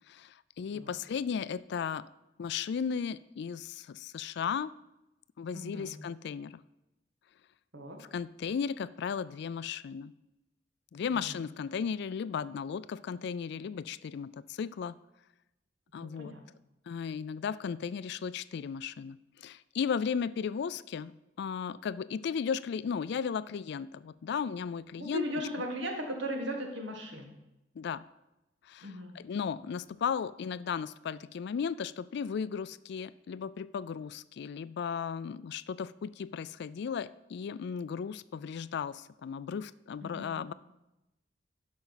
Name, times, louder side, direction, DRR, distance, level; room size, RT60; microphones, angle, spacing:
voice 1, 0.0-2.0 2.4-4.7 5.4-6.6 8.1-10.1 10.9-15.0 15.9-16.3 16.9-25.2 27.8-28.0 28.7-40.5, left 6 dB, 60° left, 17 dB, 0.3 m, -35 dB
voice 2, 5.5-6.0 7.7-8.0 11.1-11.4 16.0-16.4 25.0-27.3 28.8-29.2 40.0-40.5, equal, 75° right, 3 dB, 1.8 m, -38 dB
11.5 x 5.3 x 5.7 m, 0.94 s
head